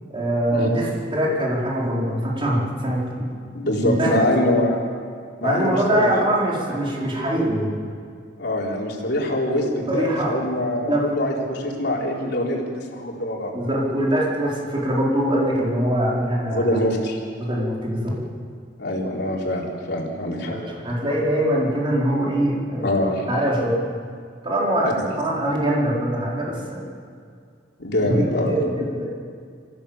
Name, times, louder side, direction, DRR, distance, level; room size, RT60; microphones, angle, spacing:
voice 1, 0.1-3.3 3.8-4.2 5.4-7.8 9.9-10.4 10.9-11.1 13.5-16.8 17.4-18.2 20.5-23.8 24.4-26.9 28.1-29.1, right 1 dB, 30° right, -4 dB, 4.5 m, -23 dB
voice 2, 3.5-4.8 5.4-6.1 8.4-13.5 16.5-17.2 18.8-20.6 22.8-23.2 24.8-25.1 27.8-28.6, left 1 dB, 65° left, -2 dB, 4.0 m, -24 dB
25.5 x 15.5 x 7.4 m, 2.2 s
head